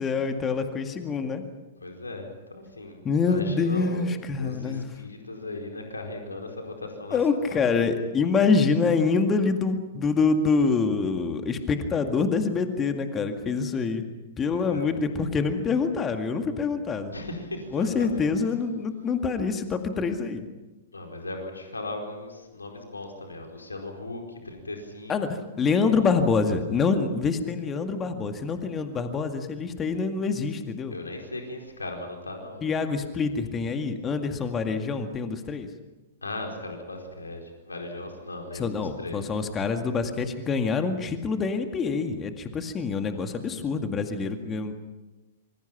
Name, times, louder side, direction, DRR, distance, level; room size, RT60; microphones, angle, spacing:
voice 1, 0.0-1.4 3.0-4.9 7.1-14.0 14.4-17.1 17.7-20.5 25.1-30.9 32.6-35.7 38.5-44.7, left 4 dB, 20° left, 7 dB, 2.0 m, -26 dB
voice 2, 1.8-4.1 4.4-7.2 7.5-7.6 14.5-14.9 17.1-18.3 20.9-25.2 30.9-32.6 36.2-37.4 37.7-39.2 43.1-43.6, left 2 dB, 80° left, 2 dB, 4.6 m, -37 dB
26.5 x 24.5 x 5.9 m, 1.1 s
figure-of-eight pair, 105°, 0 cm